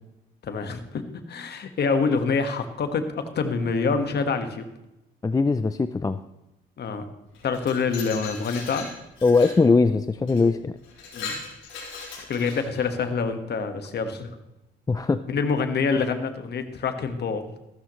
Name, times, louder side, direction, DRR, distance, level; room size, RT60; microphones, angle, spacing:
voice 1, 0.4-1.0 1.3-4.6 6.8-7.0 7.4-8.9 11.1-11.4 12.2-14.4 15.3-17.4, left 5 dB, 55° left, 7 dB, 1.6 m, -26 dB
voice 2, 5.2-6.2 9.2-10.8 14.9-15.2, left 3 dB, 20° left, 11 dB, 0.5 m, -21 dB
Glass, 7.3-9.6 10.3-10.4 10.8-12.9, left 4 dB, 85° left, 5.2 m, -38 dB
14.5 x 12.5 x 3.2 m, 0.92 s
cardioid pair, 90°, 20 cm